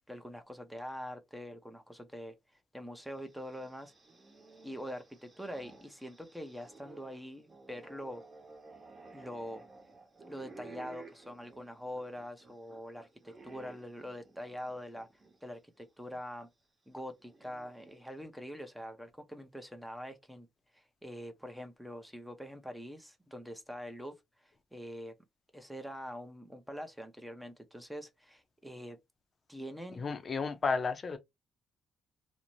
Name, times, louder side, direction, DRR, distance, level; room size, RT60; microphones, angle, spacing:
voice 1, 0.1-2.4 2.7-3.9 4.6-8.2 9.1-9.6 10.3-15.1 15.4-16.5 16.9-20.5 20.7-25.1 25.5-29.0 29.5-30.0, equal, 5° right, 0.6 m, -44 dB
sound 1, 3.1-15.4 15.8-15.9 17.0-18.2, right 3 dB, 30° right, 1.0 m, -55 dB
voice 2, 29.9-31.2, left 4 dB, 40° left, 0.6 m, -32 dB
2.6 x 2.1 x 3.0 m
cardioid pair, 90°, 0 cm